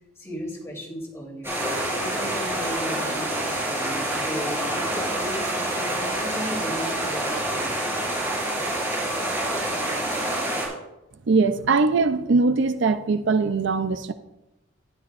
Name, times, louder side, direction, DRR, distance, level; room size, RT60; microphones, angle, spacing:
voice 1, 0.2-1.6 1.9-8.1, equal, 15° left, 2.9 m, -36 dB
sound 1, 1.4-10.7, right 1 dB, 15° right, 4.0 m, -27 dB
voice 2, 11.3-14.1, right 4 dB, 65° right, 0.5 m, -21 dB
12.0 x 10.5 x 2.5 m
head